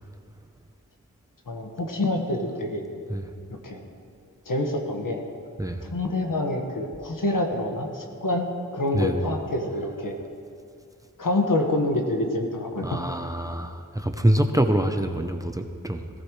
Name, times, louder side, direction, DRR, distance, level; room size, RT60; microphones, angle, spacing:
voice 1, 1.5-2.8 3.5-3.8 4.4-5.2 5.9-8.5 8.7-10.2 11.2-13.0, left 1 dB, 80° left, 2 dB, 1.7 m, -27 dB
voice 2, 8.9-9.3 12.8-16.1, right 1 dB, 10° right, 6 dB, 0.7 m, -25 dB
18.0 x 15.0 x 3.3 m, 2.3 s
wide cardioid pair, 95°, 32 cm